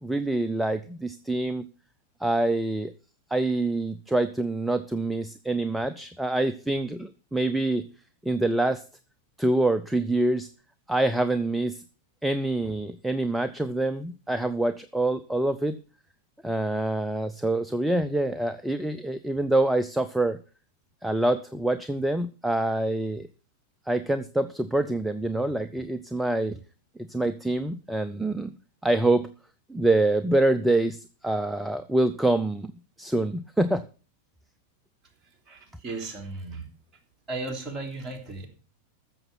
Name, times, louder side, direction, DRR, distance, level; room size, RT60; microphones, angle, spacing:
voice 1, 0.0-1.7 2.2-2.9 3.3-7.8 8.2-8.8 9.4-10.5 10.9-11.8 12.2-15.8 16.4-20.4 21.0-23.3 23.9-26.6 27.0-28.5 28.8-29.3 29.7-32.7 33.0-33.8, right 2 dB, 5° right, 11 dB, 0.6 m, -26 dB
voice 2, 35.2-36.7 37.3-38.5, right 2 dB, 20° right, 3 dB, 3.4 m, -36 dB
14.0 x 6.9 x 5.9 m, 0.37 s
figure-of-eight pair, 90°, 0 cm